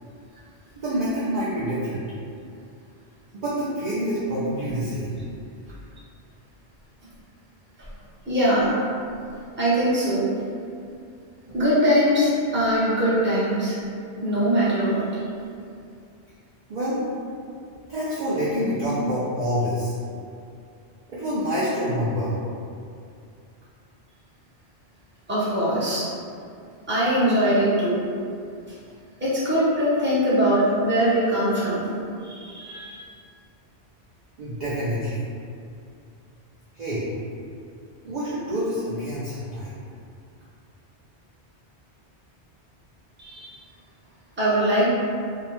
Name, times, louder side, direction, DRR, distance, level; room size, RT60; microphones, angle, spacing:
voice 1, 0.8-2.0 3.3-5.2 16.7-17.0 17.9-19.9 21.1-22.3 34.4-35.2 36.7-37.1 38.0-39.8, equal, 55° right, -9 dB, 0.5 m, -27 dB
voice 2, 8.3-8.8 9.6-10.4 11.5-13.8 14.2-15.0 25.3-26.1 26.9-28.0 29.2-31.9 32.2-33.1 43.2-43.6 44.4-44.9, equal, 10° right, -10 dB, 0.6 m, -22 dB
2.7 x 2.0 x 3.0 m, 2.4 s
omnidirectional pair, 1.1 m